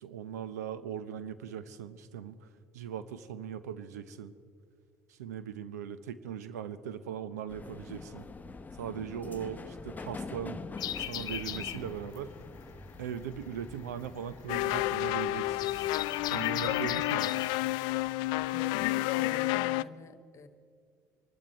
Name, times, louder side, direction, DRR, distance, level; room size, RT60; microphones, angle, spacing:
voice 1, 0.0-2.4 2.7-4.3 5.1-8.3 8.8-10.6 11.0-12.3 13.0-15.6 16.3-17.3, right 8 dB, 85° right, 13 dB, 0.8 m, -39 dB
sound 1, 7.5-17.1, left 4 dB, 20° left, 0.9 m, -46 dB
sound 2, 10.8-19.0, left 11 dB, 50° left, 0.7 m, -40 dB
sound 3, 14.5-19.8, left 17 dB, 65° left, 0.3 m, -30 dB
voice 2, 18.5-20.5, left 5 dB, 35° left, 10 dB, 1.5 m, -45 dB
24.5 x 12.5 x 4.6 m, 2.2 s
hypercardioid pair, 70°, 9 cm